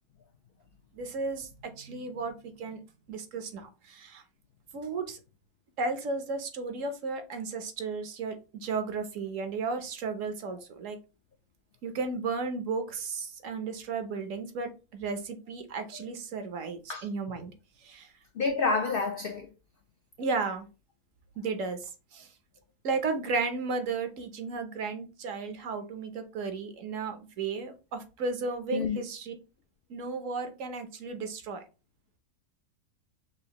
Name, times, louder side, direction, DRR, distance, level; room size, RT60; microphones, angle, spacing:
voice 1, 0.9-1.5 1.7-2.8 3.1-4.2 4.7-5.2 5.8-11.0 11.8-17.5 17.8-18.1 20.2-20.7 21.4-21.8 22.1-22.3 22.8-29.3 29.9-31.6, right 4 dB, 70° right, 1.1 m, -34 dB
voice 2, 18.3-19.5 28.7-29.0, left 4 dB, 70° left, 0.5 m, -29 dB
5.7 x 2.4 x 2.8 m
omnidirectional pair, 1.5 m